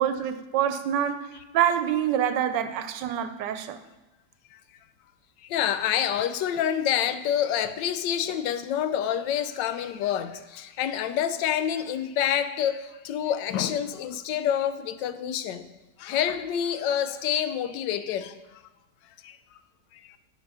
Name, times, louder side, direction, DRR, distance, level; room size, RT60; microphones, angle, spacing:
voice 1, 0.0-3.8, right 9 dB, 85° right, 10 dB, 1.2 m, -26 dB
voice 2, 5.4-15.7 16.0-18.6 19.2-19.4 19.9-20.2, left 9 dB, 90° left, 12 dB, 1.2 m, -27 dB
10.0 x 4.5 x 5.5 m, 1.1 s
omnidirectional pair, 1.9 m